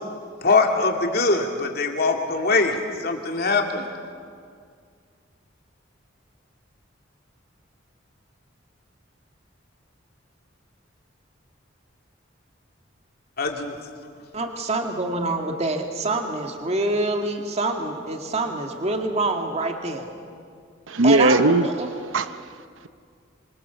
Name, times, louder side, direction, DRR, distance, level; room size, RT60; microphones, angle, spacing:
voice 1, 0.4-3.9 13.4-13.7, left 3 dB, 55° left, 3 dB, 2.7 m, -22 dB
voice 2, 14.3-20.1 21.0-21.9, right 2 dB, 35° right, 3 dB, 2.0 m, -26 dB
voice 3, 20.9-21.7 22.0-22.9, right 2 dB, 85° right, 11 dB, 0.8 m, -20 dB
26.5 x 25.0 x 7.1 m, 2.2 s
head